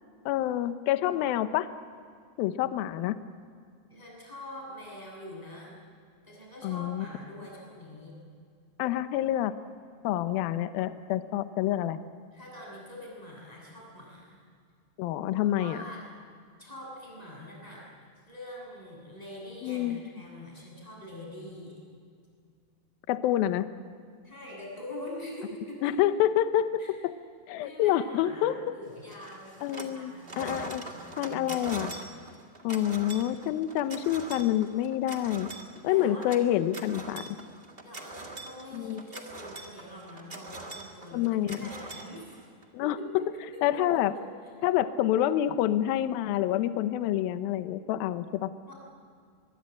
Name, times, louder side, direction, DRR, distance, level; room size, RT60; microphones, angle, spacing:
voice 1, 0.3-1.7 2.4-3.2 6.6-7.1 8.8-9.5 10.0-12.0 15.0-15.8 19.6-20.0 23.1-23.7 25.8-27.1 27.5-28.7 29.6-30.8 31.2-31.9 32.6-35.5 35.8-37.3 38.7-39.0 41.1-41.6 42.7-43.0 43.6-44.1 44.6-48.5, left 12 dB, 75° left, 11 dB, 2.4 m, -27 dB
voice 2, 3.9-5.7 6.2-8.1 12.3-14.4 15.3-16.0 16.6-17.8 18.3-21.8 24.2-25.9 26.8-26.9 27.6-32.0 35.9-36.3 37.8-42.4 42.8-43.9 44.1-44.3 48.7-48.8, left 1 dB, 10° left, -3 dB, 8.0 m, -44 dB
sound 1, 29.1-30.0 30.2-42.6, right 3 dB, 75° right, 0.5 m, -43 dB
23.5 x 22.5 x 8.5 m, 2.2 s
omnidirectional pair, 4.8 m